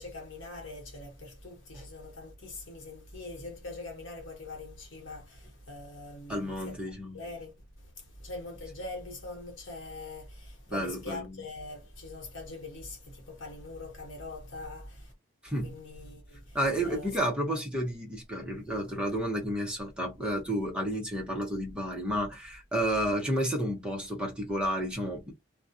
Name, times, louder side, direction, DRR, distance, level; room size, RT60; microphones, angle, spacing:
voice 1, 0.0-6.8 7.1-7.5 8.2-15.1 15.6-16.6 16.8-17.1 18.8-18.9, left 2 dB, 70° left, 1.1 m, -43 dB
voice 2, 6.3-7.2 10.7-11.4 15.4-15.8 16.5-25.3, equal, 5° right, 0.8 m, -31 dB
2.3 x 2.3 x 2.6 m
head